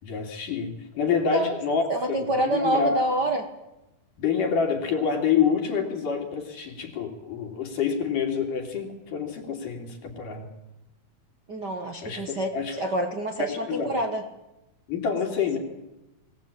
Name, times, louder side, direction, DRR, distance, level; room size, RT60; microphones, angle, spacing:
voice 1, 0.0-3.0 4.2-10.5 12.0-12.8 13.4-13.9 14.9-15.6, left 6 dB, 60° left, 2 dB, 4.2 m, -27 dB
voice 2, 1.1-1.6 1.9-3.4 11.5-14.2, right 1 dB, 50° right, 4 dB, 1.2 m, -27 dB
22.5 x 17.5 x 8.8 m, 0.98 s
omnidirectional pair, 4.4 m